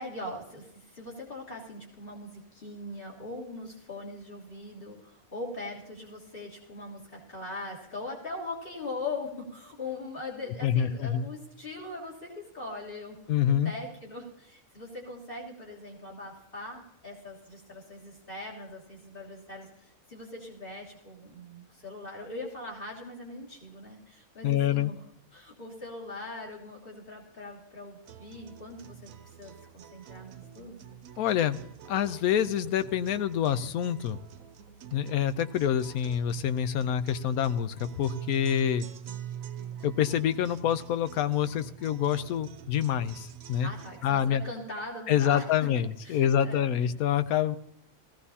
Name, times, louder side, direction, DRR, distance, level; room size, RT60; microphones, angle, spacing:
voice 1, 0.0-13.2 13.5-25.0 25.3-29.1 29.4-30.8 39.0-39.2 43.6-45.5 46.0-46.7, left 2 dB, 35° left, -4 dB, 3.3 m, -41 dB
voice 2, 10.6-11.3 13.3-13.7 24.4-24.9 31.2-31.6 31.9-34.2 34.9-38.9 39.8-43.7 44.0-44.4 45.1-47.6, left 9 dB, 80° left, 13 dB, 1.1 m, -27 dB
sound 1, 28.0-44.0, right 9 dB, 70° right, 1.1 m, -46 dB
18.0 x 15.5 x 2.8 m, 0.79 s
omnidirectional pair, 1.5 m